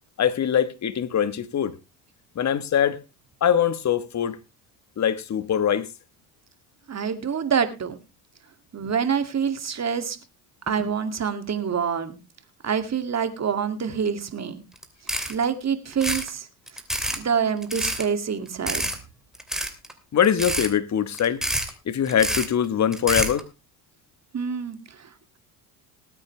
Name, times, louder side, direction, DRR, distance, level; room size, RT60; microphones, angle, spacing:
voice 1, 0.2-1.8 2.3-3.0 3.4-4.4 5.0-5.9 20.1-21.4 21.8-23.4, left 9 dB, 35° left, 1.4 m, -22 dB
voice 2, 6.9-8.0 8.7-10.2 10.7-12.2 12.6-14.6 15.3-16.5 17.1-18.8 24.3-25.1, right 7 dB, 35° right, 2.5 m, -26 dB
sound 1, 14.8-14.9 15.1-15.4 15.9-16.3 16.7-17.2 17.6-18.0 18.7-19.0 19.3-19.9 20.2-20.7 21.1-21.7 22.1-22.5 22.9-23.4, right 1 dB, ahead, 2.8 m, -27 dB
19.5 x 8.8 x 3.3 m
supercardioid pair, 80°, 47 cm